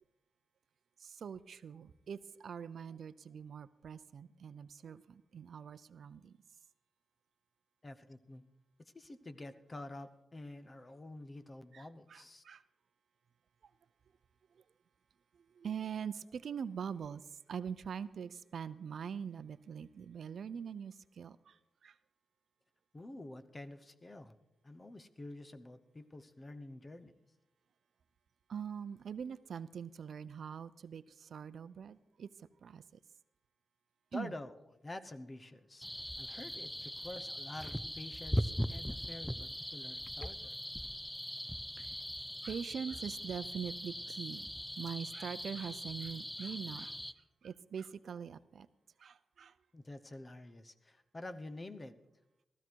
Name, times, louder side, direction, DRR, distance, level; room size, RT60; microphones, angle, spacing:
voice 1, 1.0-6.4 11.7-12.6 13.6-13.7 14.5-14.6 15.3-22.0 28.5-33.0 34.1-34.3 41.8-42.0 42.4-48.7 49.0-49.6, right 7 dB, 70° right, 15 dB, 0.5 m, -43 dB
voice 2, 7.8-8.4 8.8-12.4 22.9-24.4 24.6-27.1 34.1-34.6 34.8-35.9 36.2-40.6 49.7-51.9, left 2 dB, 25° left, 10 dB, 0.9 m, -48 dB
sound 1, 35.8-47.1, equal, 5° left, 0.5 m, -40 dB
15.5 x 14.0 x 4.6 m, 0.92 s
wide cardioid pair, 120°, 0 cm